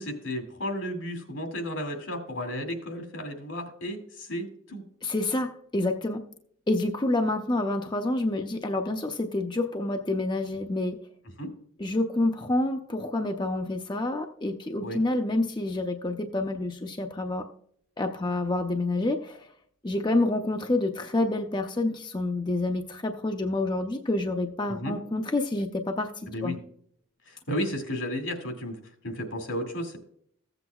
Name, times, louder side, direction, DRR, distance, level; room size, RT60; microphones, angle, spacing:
voice 1, 0.0-4.8 11.4-11.5 14.8-15.0 24.7-24.9 26.3-26.6 27.3-28.8 29.0-30.0, equal, 80° left, 5 dB, 2.3 m, -33 dB
voice 2, 5.0-6.2 6.7-11.0 11.8-17.5 18.0-19.5 19.8-26.5, left 2 dB, 20° left, 4 dB, 0.5 m, -28 dB
15.5 x 7.9 x 2.3 m, 0.64 s
head